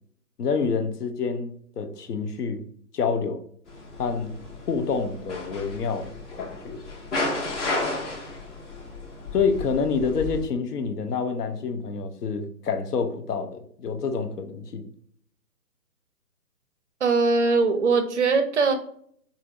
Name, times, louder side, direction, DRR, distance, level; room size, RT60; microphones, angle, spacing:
voice 1, 0.4-2.6 2.9-3.4 4.0-4.4 4.7-6.1 6.4-6.8 9.3-14.9, left 5 dB, 70° left, 0.7 m, -27 dB
sound 1, 3.7-10.4, left 2 dB, 45° left, 1.3 m, -33 dB
voice 2, 17.0-18.7, right 4 dB, 50° right, 0.5 m, -21 dB
4.3 x 2.6 x 2.4 m
hypercardioid pair, 145°, 48 cm